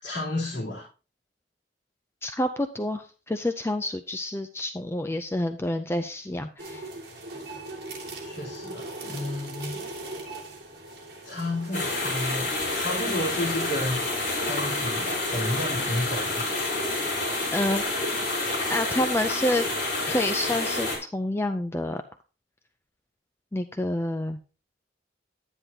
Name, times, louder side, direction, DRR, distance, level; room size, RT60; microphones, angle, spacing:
voice 1, 0.0-0.9 8.2-9.8 11.2-14.1 14.4-16.5, left 1 dB, 65° left, -7 dB, 3.3 m, -32 dB
voice 2, 2.2-6.9 17.5-17.8 18.7-19.7 20.0-22.0 23.5-24.4, left 1 dB, 15° left, 9 dB, 0.4 m, -28 dB
sound 1, 6.6-12.9, right 2 dB, 60° right, 2.4 m, -40 dB
sound 2, 11.7-21.0, left 2 dB, 50° left, 4.5 m, -28 dB
11.0 x 10.0 x 2.8 m, 0.34 s
head